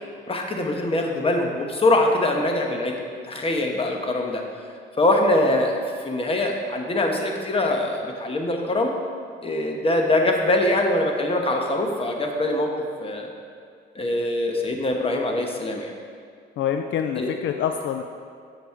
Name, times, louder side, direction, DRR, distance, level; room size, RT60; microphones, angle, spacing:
voice 1, 0.3-4.5 5.0-9.0 9.4-12.7 13.0-13.3 13.9-15.9 17.2-17.3, left 1 dB, 30° left, 2 dB, 1.2 m, -23 dB
voice 2, 16.6-18.0, left 8 dB, 70° left, 6 dB, 0.5 m, -26 dB
8.2 x 6.3 x 4.6 m, 2.2 s
cardioid pair, 90°, 20 cm